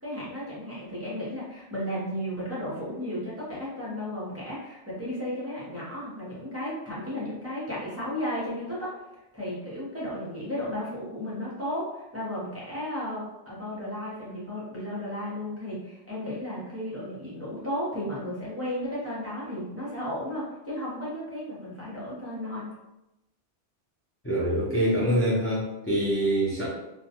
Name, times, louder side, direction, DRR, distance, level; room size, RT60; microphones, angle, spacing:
voice 1, 0.0-9.0 9.3-22.7, left 1 dB, 15° right, -8 dB, 0.6 m, -34 dB
voice 2, 24.2-26.7, equal, 20° left, -9 dB, 0.3 m, -25 dB
2.3 x 2.2 x 2.8 m, 0.95 s
omnidirectional pair, 1.2 m